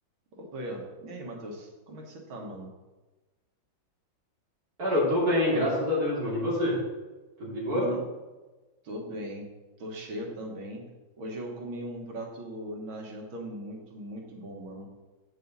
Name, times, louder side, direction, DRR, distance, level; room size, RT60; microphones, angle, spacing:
voice 1, 0.3-2.7 7.7-8.1 8.8-9.5 9.8-10.8 11.2-14.9, right 1 dB, 85° right, 0 dB, 2.2 m, -39 dB
voice 2, 4.8-6.8 7.4-7.9, left 1 dB, 50° right, -6 dB, 3.1 m, -26 dB
8.2 x 6.6 x 4.0 m, 1.2 s
omnidirectional pair, 2.1 m